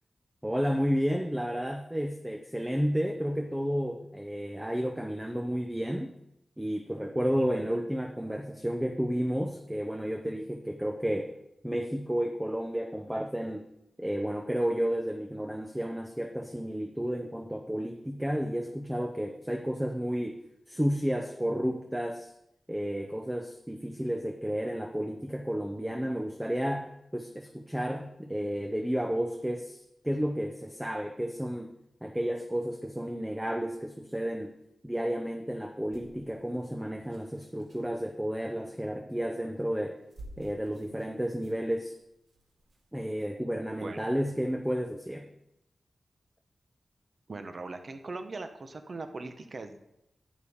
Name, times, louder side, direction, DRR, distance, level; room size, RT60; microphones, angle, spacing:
voice 1, 0.4-6.2 6.6-11.4 11.6-13.7 14.0-20.4 20.7-22.3 22.7-31.7 32.0-34.5 34.8-40.0 40.4-42.0 42.9-45.3, equal, 5° right, 4 dB, 0.5 m, -32 dB
sound 1, 35.9-38.0 39.4-39.6 40.0-43.6 44.1-44.2, right 1 dB, 65° right, 2.0 m, -53 dB
voice 2, 47.3-49.9, right 3 dB, 45° right, 7 dB, 0.8 m, -40 dB
11.0 x 8.5 x 3.6 m, 0.84 s
wide cardioid pair, 135°, 0 cm